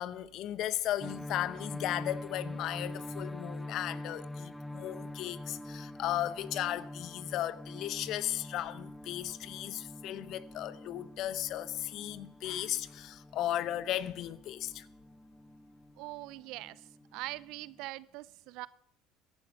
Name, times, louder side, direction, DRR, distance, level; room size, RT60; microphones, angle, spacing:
voice 1, 0.0-14.9, left 12 dB, 60° left, 0.8 m, -36 dB
sound 1, 1.0-17.9, left 1 dB, 5° left, 0.5 m, -45 dB
voice 2, 16.0-18.7, right 19 dB, 65° right, 0.5 m, -42 dB
15.0 x 11.0 x 5.4 m
hypercardioid pair, 70°, 0 cm